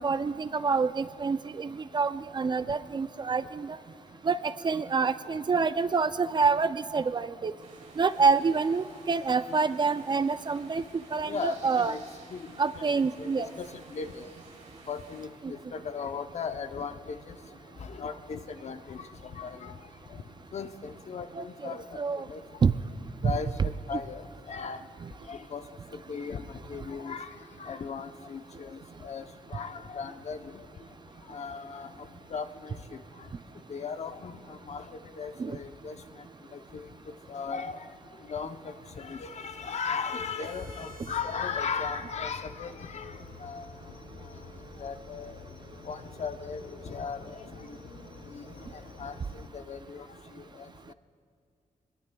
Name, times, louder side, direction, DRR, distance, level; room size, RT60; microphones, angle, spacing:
voice 1, 0.0-3.8 4.2-7.5 8.0-10.8 11.1-11.9 12.6-13.5 21.4-21.5 22.0-22.3 22.6-22.7 23.2-23.3 23.6-24.0 35.4-35.6, right 5 dB, 35° right, 13 dB, 0.4 m, -27 dB
sound 1, 7.6-15.3, right 3 dB, 60° right, 3.2 m, -54 dB
voice 2, 11.3-12.0 12.3-12.5 12.8-14.3 14.9-17.4 17.8-19.8 20.5-22.0 22.3-22.4 23.2-24.8 25.3-25.6 25.9-29.2 29.5-30.6 31.3-31.9 32.3-32.7 33.7-36.0 36.5-36.8 37.3-37.9 38.3-43.1 43.4-43.7 44.8-45.4 45.9-46.6 46.9-47.8 48.3-48.4 49.0-50.1 50.5-50.7, left 6 dB, 50° left, 9 dB, 0.7 m, -37 dB
sound 2, 40.4-48.4, right 5 dB, 80° right, 3.3 m, -53 dB
sound 3, 40.8-49.5, left 5 dB, 80° left, 1.1 m, -49 dB
25.5 x 21.5 x 2.3 m, 2.2 s
wide cardioid pair, 125°, 14 cm